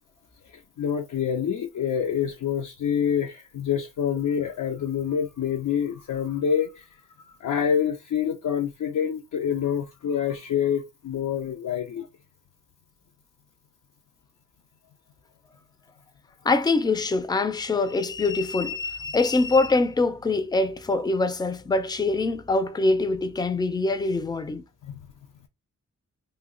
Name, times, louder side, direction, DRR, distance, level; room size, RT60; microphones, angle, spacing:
voice 1, 0.5-6.9 7.3-12.1 24.8-25.0, left 8 dB, 80° left, 0.5 m, -27 dB
voice 2, 16.4-24.6, left 3 dB, 15° left, 0.3 m, -24 dB
2.7 x 2.1 x 3.7 m
wide cardioid pair, 95°, 30 cm